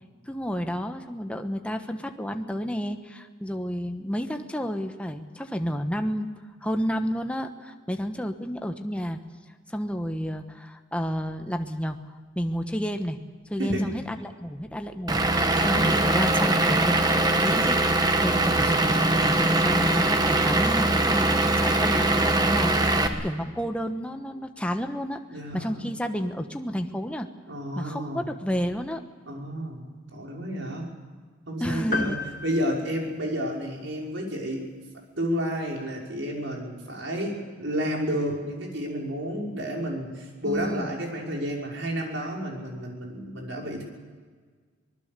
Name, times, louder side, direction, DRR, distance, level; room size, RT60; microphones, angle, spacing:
voice 1, 0.3-6.3 6.6-9.2 9.7-12.0 12.4-13.2 13.5-25.2 25.5-27.3 27.8-29.0 31.6-32.2 40.4-40.9, equal, 5° left, 5 dB, 1.2 m, -31 dB
voice 2, 13.6-13.9 15.7-16.0 23.0-23.2 25.3-25.9 27.5-28.2 29.3-30.9 31.5-34.7 35.2-43.8, equal, 75° right, -1 dB, 5.7 m, -31 dB
Vehicle / Engine, 15.1-23.1, right 2 dB, 20° right, 1.4 m, -22 dB
sound 1, 31.9-33.7, left 3 dB, 45° left, 1.8 m, -34 dB
25.0 x 20.0 x 6.8 m, 1.6 s
head